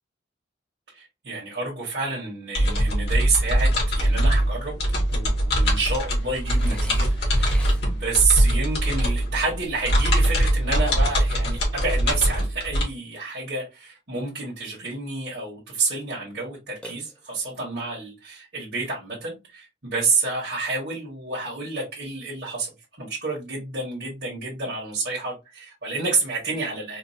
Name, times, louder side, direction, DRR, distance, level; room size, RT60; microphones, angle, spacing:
voice 1, 0.9-4.7 5.1-22.7 23.0-27.0, right 4 dB, 60° right, 1.5 m, -29 dB
sound 1, 2.5-12.8, equal, 60° left, 1.8 m, -22 dB
Burping eructation, 6.4-8.2 16.8-17.6, left 1 dB, 5° left, 0.6 m, -44 dB
4.4 x 2.6 x 2.7 m
head